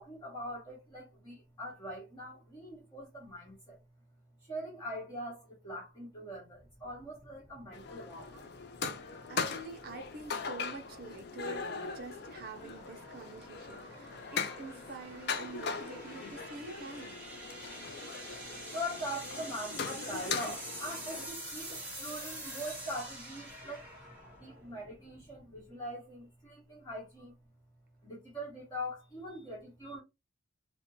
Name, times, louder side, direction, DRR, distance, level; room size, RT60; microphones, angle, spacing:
voice 1, 0.0-3.8 4.4-8.4 18.7-23.8 24.3-27.4 28.0-30.0, equal, 20° left, 1.0 m, -42 dB
sound 1, 6.6-25.7, right 1 dB, 5° right, 1.0 m, -47 dB
sound 2, 7.7-21.3, left 5 dB, 50° left, 0.4 m, -40 dB
voice 2, 9.3-17.2, right 3 dB, 45° right, 0.5 m, -47 dB
2.5 x 2.1 x 2.9 m
head